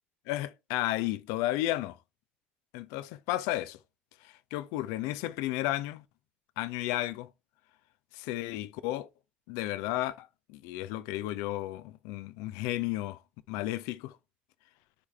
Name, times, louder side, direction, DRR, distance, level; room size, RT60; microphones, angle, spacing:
voice 1, 0.3-2.0 2.7-3.8 4.2-6.0 6.6-7.3 8.1-9.1 9.5-13.2 13.5-14.2, left 16 dB, 60° left, 0.7 m, -33 dB
10.0 x 4.8 x 3.5 m
figure-of-eight pair, 60°, 6 cm